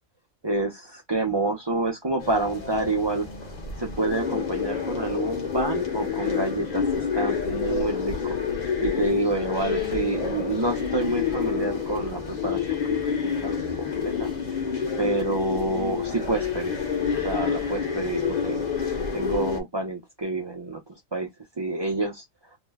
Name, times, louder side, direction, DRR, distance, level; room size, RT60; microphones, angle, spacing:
voice 1, 0.4-3.3 3.8-8.4 8.8-13.0 13.2-14.3 15.0-16.8 17.1-18.6 19.1-20.8 21.1-21.3 21.6-22.2, right 2 dB, 40° right, 0.3 m, -28 dB
sound 1, 2.2-19.6, left 6 dB, 40° left, 0.8 m, -28 dB
2.6 x 2.1 x 3.4 m
omnidirectional pair, 1.4 m